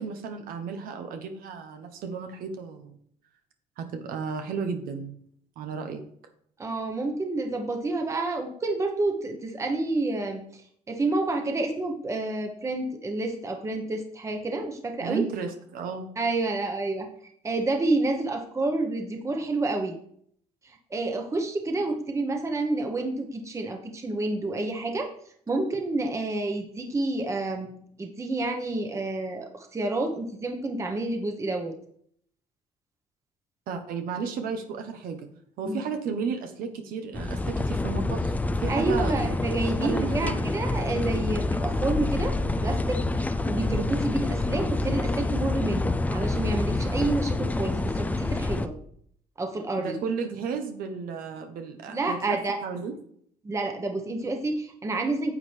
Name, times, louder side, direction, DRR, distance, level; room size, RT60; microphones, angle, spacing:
voice 1, 0.0-3.0 3.8-5.2 5.6-6.0 15.0-16.1 33.7-35.3 35.6-39.4 39.7-40.5 49.8-53.0, right 5 dB, 80° right, 6 dB, 1.1 m, -33 dB
voice 2, 6.6-10.4 10.9-15.2 16.2-17.1 17.4-19.9 20.9-25.1 25.5-31.7 35.6-35.8 38.7-48.7 49.4-50.0 51.9-52.6 53.4-55.3, right 2 dB, 20° right, 4 dB, 1.0 m, -29 dB
sound 1, 37.1-48.7, left 2 dB, 10° left, 0.4 m, -27 dB
9.8 x 7.5 x 3.4 m, 0.64 s
cardioid pair, 125°, 15 cm